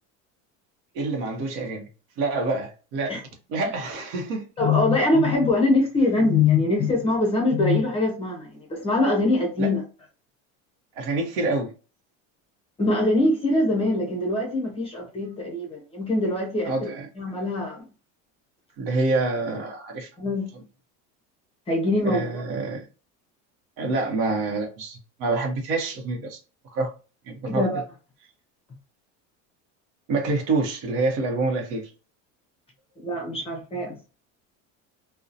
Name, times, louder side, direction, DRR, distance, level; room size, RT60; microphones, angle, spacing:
voice 1, 0.9-1.9 2.2-3.1 3.5-4.5 9.6-9.7 11.0-11.7 16.6-17.1 18.8-20.1 22.0-22.9 23.8-26.4 26.7-26.9 27.3-27.6 30.1-31.9, right 3 dB, 60° right, 0.9 m, -27 dB
voice 2, 4.6-9.8 12.8-16.9 17.2-17.8 20.2-20.5 21.7-22.4 27.5-27.8 33.0-34.0, left 2 dB, 15° left, 0.6 m, -23 dB
2.7 x 2.1 x 2.5 m
cardioid pair, 165°, 36 cm